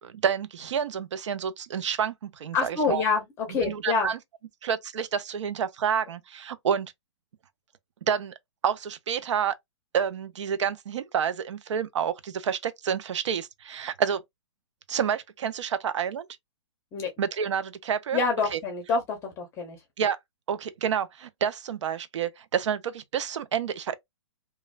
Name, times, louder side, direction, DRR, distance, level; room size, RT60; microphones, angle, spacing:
voice 1, 0.0-3.0 3.5-4.2 4.6-6.9 8.1-8.3 8.6-9.6 9.9-14.2 14.9-16.3 17.2-18.2 18.5-18.6 20.0-20.2 20.5-23.9, right 7 dB, 75° right, 0.5 m, -29 dB
voice 2, 2.5-4.1 16.9-17.1 18.1-19.8, left 4 dB, 15° left, 0.6 m, -27 dB
3.0 x 2.3 x 2.2 m
hypercardioid pair, 155°, 16 cm